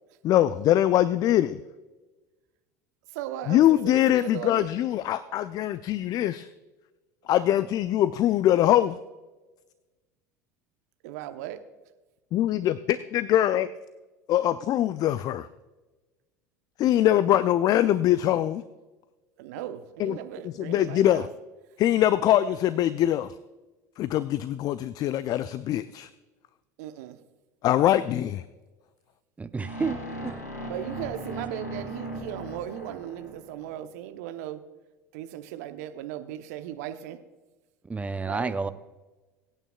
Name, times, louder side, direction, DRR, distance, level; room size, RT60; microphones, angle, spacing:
voice 1, 0.2-1.6 3.5-6.5 7.3-9.0 12.3-13.7 14.3-15.5 16.8-18.6 20.0-20.2 20.4-21.3 21.8-23.3 24.0-26.1 27.6-28.4, left 12 dB, 45° left, 16 dB, 0.4 m, -23 dB
voice 2, 3.1-4.7 11.0-11.6 19.4-21.3 26.8-27.2 30.7-34.7 35.1-37.2 38.2-38.7, right 11 dB, 65° right, 10 dB, 0.9 m, -37 dB
voice 3, 29.4-30.4 37.8-38.7, right 4 dB, 15° right, 12 dB, 0.6 m, -30 dB
sound 1, 29.6-33.7, equal, 85° left, 2.8 m, -38 dB
23.5 x 9.0 x 2.3 m, 1.2 s
figure-of-eight pair, 75°, 9 cm